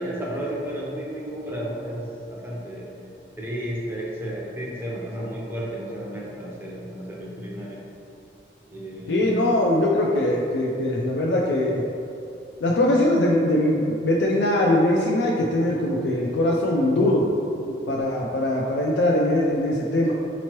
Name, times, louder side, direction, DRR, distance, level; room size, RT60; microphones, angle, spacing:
voice 1, 0.0-2.9 3.4-7.8 8.7-9.6, equal, 10° right, -5 dB, 0.5 m, -32 dB
voice 2, 9.1-11.8 12.6-17.3 17.6-20.1, left 1 dB, 80° left, -3 dB, 0.4 m, -21 dB
4.3 x 3.0 x 2.9 m, 2.6 s
head